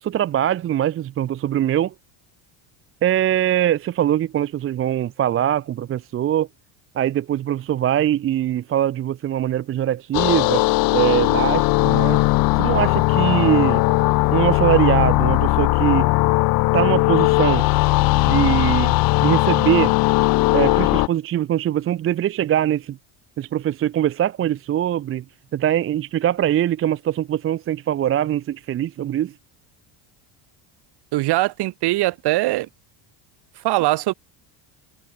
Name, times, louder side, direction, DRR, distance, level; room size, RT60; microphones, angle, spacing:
voice 1, 0.0-1.9 3.0-6.5 6.9-10.6 10.9-12.2 12.6-13.8 14.3-16.1 16.7-17.6 18.2-19.9 20.5-23.0 23.4-25.2 25.5-29.3, right 11 dB, 30° right, 0.6 m, -22 dB
sound 1, 10.1-21.1, left 22 dB, 50° left, 0.6 m, -18 dB
voice 2, 31.1-32.7 33.6-34.1, right 18 dB, 55° right, 2.9 m, -21 dB
cardioid pair, 155°, 47 cm